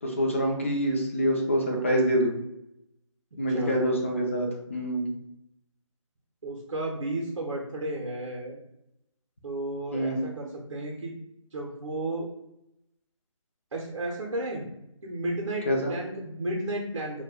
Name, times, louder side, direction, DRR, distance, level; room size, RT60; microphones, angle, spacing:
voice 1, 0.0-2.3 3.4-5.1 9.9-10.3 15.7-15.9, equal, 25° left, 2 dB, 0.4 m, -26 dB
voice 2, 3.5-3.8 6.4-8.6 9.4-11.1 11.5-12.3 13.7-14.6 15.0-17.2, right 1 dB, 60° right, -1 dB, 0.6 m, -33 dB
2.3 x 2.1 x 3.5 m, 0.83 s
figure-of-eight pair, 155°, 17 cm